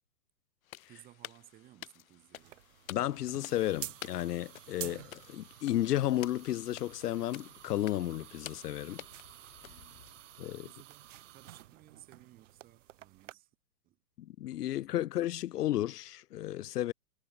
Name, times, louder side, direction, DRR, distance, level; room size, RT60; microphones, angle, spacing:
sound 1, 0.6-10.4, left 12 dB, 65° left, 1.3 m, -51 dB
voice 1, 0.9-2.6 9.6-13.5 13.8-14.0 14.8-15.1, right 15 dB, 20° right, 2.7 m, -59 dB
sound 2, 2.4-13.3, right 13 dB, 55° right, 1.8 m, -50 dB
voice 2, 2.9-9.0 10.4-10.7 14.2-16.9, left 13 dB, 90° left, 0.7 m, -33 dB
hypercardioid pair, 165°, 46 cm